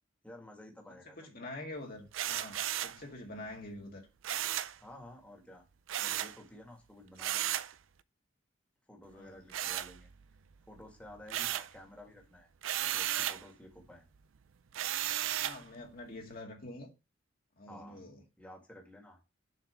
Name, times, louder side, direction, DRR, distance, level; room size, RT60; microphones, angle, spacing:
voice 1, 0.2-1.3 4.8-5.6 6.0-7.6 8.9-10.1 10.7-12.5 12.8-14.0 17.7-18.1 18.4-19.2, left 1 dB, 5° left, 2.0 m, -52 dB
voice 2, 0.9-4.1 9.1-9.4 15.4-16.9 17.6-18.2, left 1 dB, 50° left, 1.9 m, -46 dB
sound 1, 2.1-3.0 4.2-4.8 5.9-6.4 7.2-7.7 9.5-10.4 10.8-11.8 12.6-13.4 14.7-15.6, right 12 dB, 80° right, 0.5 m, -34 dB
7.4 x 4.6 x 6.7 m
head